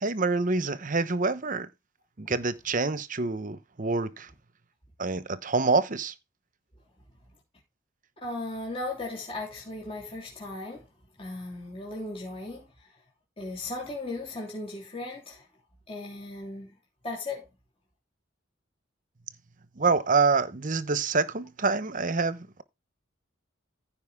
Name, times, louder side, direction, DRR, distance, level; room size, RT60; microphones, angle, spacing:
voice 1, 0.0-1.7 2.2-4.3 5.0-6.1 19.8-22.6, right 4 dB, 40° right, 0.9 m, -26 dB
voice 2, 8.2-10.8 11.2-12.7 13.4-15.4 15.9-16.8 17.0-17.5, left 2 dB, 30° left, 3.3 m, -36 dB
15.0 x 5.1 x 3.5 m
head